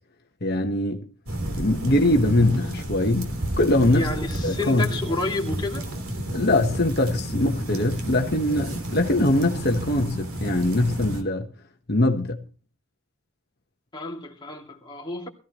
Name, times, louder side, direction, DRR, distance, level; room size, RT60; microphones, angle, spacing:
voice 1, 0.4-1.0 1.6-3.3 3.6-4.1 4.4-4.9 6.3-11.5 11.9-12.4, left 1 dB, 50° left, 1.3 m, -22 dB
sound 1, 1.3-11.2, right 1 dB, 85° right, 3.3 m, -31 dB
voice 2, 3.9-5.9 13.9-15.3, left 2 dB, 20° left, 2.6 m, -30 dB
20.5 x 14.5 x 3.0 m
head